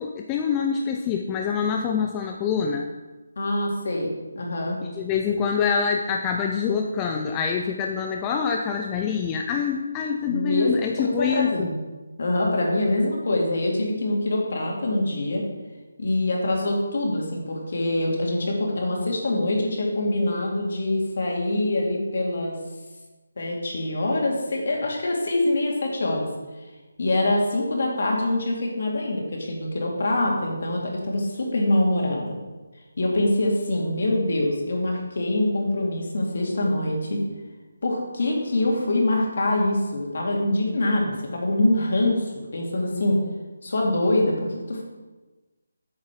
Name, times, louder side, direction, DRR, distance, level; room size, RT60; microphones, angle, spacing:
voice 1, 0.0-2.9 4.8-11.7, left 6 dB, 15° left, 2 dB, 0.4 m, -25 dB
voice 2, 3.4-4.8 10.3-11.7 12.2-15.4 16.0-22.6 23.4-26.3 27.0-32.4 33.0-37.2 37.8-43.2 43.6-44.8, left 1 dB, 55° left, -1 dB, 2.3 m, -24 dB
8.4 x 6.0 x 4.8 m, 1.2 s
figure-of-eight pair, 170°, 0 cm